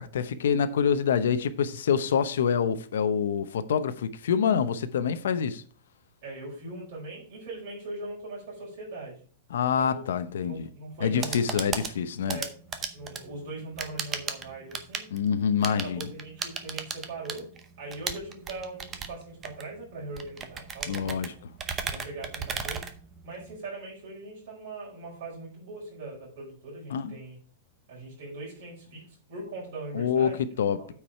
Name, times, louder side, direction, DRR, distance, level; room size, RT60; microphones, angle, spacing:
voice 1, 0.0-5.6 9.5-10.7 11.0-12.4 15.1-16.1 20.9-21.3 26.9-27.1 29.9-30.9, left 7 dB, 80° left, 0.8 m, -26 dB
voice 2, 6.2-9.2 9.8-10.0 10.4-11.5 12.3-12.5 12.9-15.1 15.6-17.5 17.8-21.4 21.9-22.8 23.2-27.4 27.9-30.4 30.8-30.9, right 2 dB, 45° right, 4.9 m, -40 dB
sound 1, 11.0-23.6, right 6 dB, 15° right, 0.7 m, -37 dB
8.8 x 4.8 x 5.6 m
supercardioid pair, 180°, 0 cm